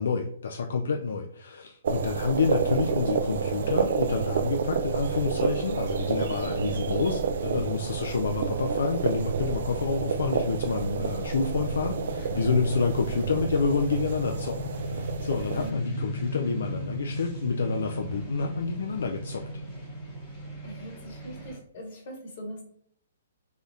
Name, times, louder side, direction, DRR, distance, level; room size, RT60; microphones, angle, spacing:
voice 1, 0.0-19.5, left 4 dB, 80° left, 4 dB, 0.3 m, -28 dB
sound 1, 1.8-15.7, right 6 dB, 65° right, 0.3 m, -29 dB
sound 2, 3.9-21.6, left 1 dB, 15° left, 0.8 m, -39 dB
voice 2, 7.5-8.0 12.1-12.7 15.5-16.0 20.6-22.7, equal, 50° left, 1 dB, 1.1 m, -41 dB
3.4 x 2.3 x 2.6 m, 0.65 s
hypercardioid pair, 150°, 0 cm